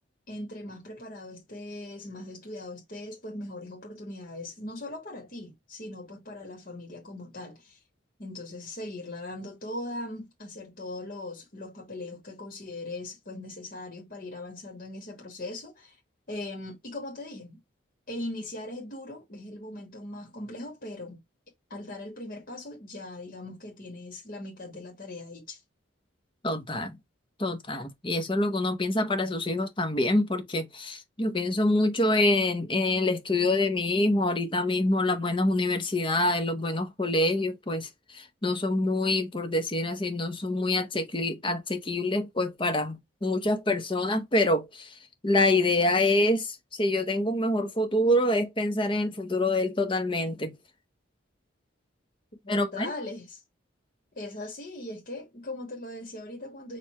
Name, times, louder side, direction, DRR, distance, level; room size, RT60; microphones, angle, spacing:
voice 1, 0.3-7.8 8.2-16.0 16.3-17.6 18.1-21.2 21.7-25.6 52.4-53.4 54.1-56.8, left 1 dB, 45° left, 1.2 m, -40 dB
voice 2, 26.4-27.0 27.4-45.0 45.2-50.5 52.5-52.9, left 1 dB, 25° left, 0.8 m, -26 dB
4.6 x 2.3 x 4.2 m
head